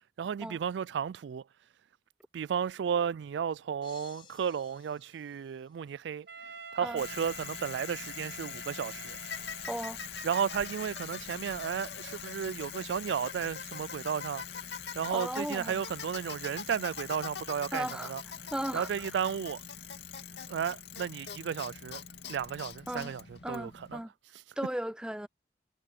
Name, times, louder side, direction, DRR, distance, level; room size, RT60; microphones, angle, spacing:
voice 1, 0.2-1.4 2.3-6.3 6.7-9.2 10.2-14.4 15.0-18.2 18.7-19.6 20.5-22.0 22.3-24.0 24.3-24.4, right 7 dB, 90° right, 0.3 m, -33 dB
sound 1, 3.8-6.1, left 7 dB, 30° left, 4.8 m, -57 dB
Wind instrument woodwind instrument, 6.3-10.1, right 5 dB, 65° right, 1.0 m, -48 dB
Bicycle, 7.0-24.0, left 7 dB, 80° left, 2.4 m, -42 dB
voice 2, 9.7-10.0 15.1-15.8 17.7-18.1 18.5-18.9 22.9-23.1 23.4-24.1 24.6-25.3, right 1 dB, 5° right, 0.5 m, -36 dB
head